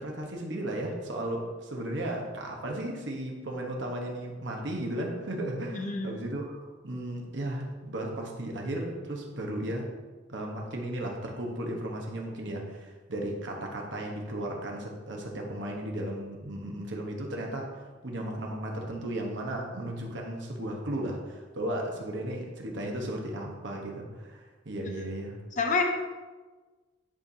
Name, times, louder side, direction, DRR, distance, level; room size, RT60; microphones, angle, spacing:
voice 1, 0.0-9.9 10.3-25.4, right 1 dB, 65° right, 0 dB, 1.1 m, -35 dB
voice 2, 5.7-6.1 24.8-24.9 25.6-25.8, left 4 dB, 40° left, 2 dB, 0.6 m, -27 dB
10.5 x 4.4 x 2.8 m, 1.3 s
head